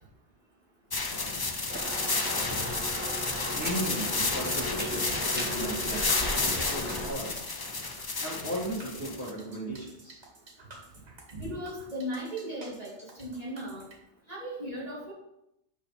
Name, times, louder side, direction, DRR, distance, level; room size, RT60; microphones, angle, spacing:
sound 1, 0.9-9.3, left 3 dB, 25° left, 0.5 m, -31 dB
sound 2, 1.7-7.1, right 1 dB, 10° right, 1.7 m, -37 dB
voice 1, 3.5-6.2 6.5-7.4 7.9-10.2, right 1 dB, 50° left, -4 dB, 2.3 m, -36 dB
sound 3, 6.7-14.0, right 2 dB, 85° right, 1.9 m, -52 dB
voice 2, 11.3-13.8 14.3-15.1, equal, 35° right, -8 dB, 3.1 m, -37 dB
9.3 x 5.6 x 4.3 m, 0.85 s
omnidirectional pair, 1.1 m